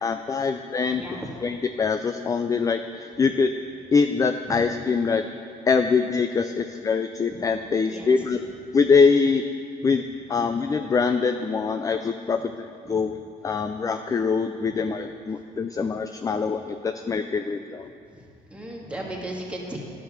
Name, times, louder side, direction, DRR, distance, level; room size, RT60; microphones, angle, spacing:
voice 1, 0.0-1.0 1.4-3.5 3.9-5.2 5.7-8.4 8.7-9.4 9.8-10.0 10.3-12.5 12.9-13.2 13.4-17.9, left 5 dB, 20° left, 8 dB, 0.4 m, -23 dB
voice 2, 7.9-8.2 12.9-13.0 18.5-19.8, right 1 dB, 5° right, -2 dB, 1.9 m, -35 dB
11.0 x 6.7 x 5.9 m, 2.4 s
cardioid pair, 110°, 17 cm